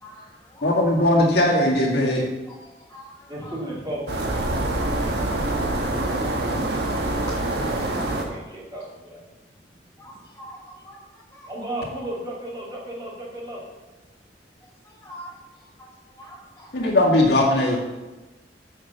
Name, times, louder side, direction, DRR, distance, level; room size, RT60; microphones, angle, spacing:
voice 1, 0.0-0.6 2.5-3.6 6.3-7.4 10.0-11.5 14.8-15.9 16.2-16.7, equal, 15° left, -5 dB, 1.3 m, -44 dB
voice 2, 0.6-2.2 16.7-17.8, left 1 dB, 65° left, -2 dB, 2.0 m, -19 dB
voice 3, 3.3-5.8 7.4-9.8 11.5-13.6, right 1 dB, 25° right, -5 dB, 2.5 m, -36 dB
sound 1, 4.1-8.2, right 2 dB, 65° right, 1.4 m, -25 dB
6.7 x 6.6 x 6.7 m, 1.1 s
head